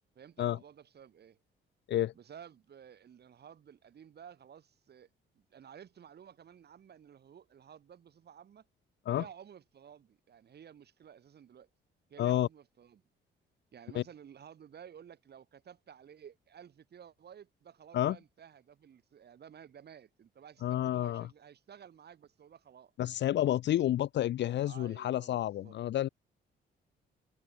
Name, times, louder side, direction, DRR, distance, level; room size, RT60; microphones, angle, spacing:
voice 1, 0.0-1.4 2.1-5.1 5.3-8.6 9.1-11.7 12.1-13.0 13.7-22.9 24.6-25.8, right 8 dB, 55° right, 3.5 m, -54 dB
voice 2, 20.6-21.3 23.0-26.1, left 12 dB, 65° left, 0.6 m, -30 dB
cardioid pair, 90°, 20 cm